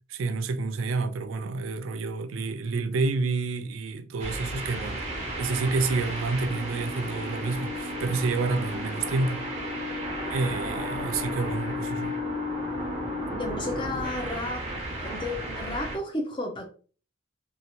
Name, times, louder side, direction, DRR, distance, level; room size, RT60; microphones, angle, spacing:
voice 1, 0.1-5.0 5.4-9.4 10.2-12.2, right 3 dB, 85° right, 0.4 m, -29 dB
sound 1, 4.2-16.0, equal, 35° right, 0.7 m, -33 dB
voice 2, 13.3-14.7 14.9-16.7, left 2 dB, 25° left, 0.6 m, -32 dB
2.8 x 2.5 x 2.8 m
head